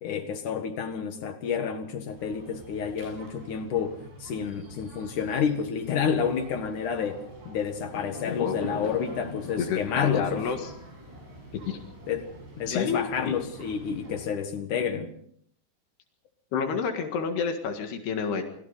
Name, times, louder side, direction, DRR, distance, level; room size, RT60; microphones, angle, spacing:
voice 1, 0.0-10.4 12.1-12.3 12.6-15.1, left 7 dB, 60° left, 2.8 m, -29 dB
sound 1, 2.1-14.2, right 1 dB, 80° right, 10.0 m, -47 dB
Fireworks, 7.9-12.4, left 3 dB, 35° left, 3.2 m, -41 dB
voice 2, 9.6-10.7 11.6-11.8 12.7-13.3 16.5-18.4, left 6 dB, 75° left, 3.9 m, -29 dB
29.0 x 21.5 x 4.1 m
omnidirectional pair, 4.7 m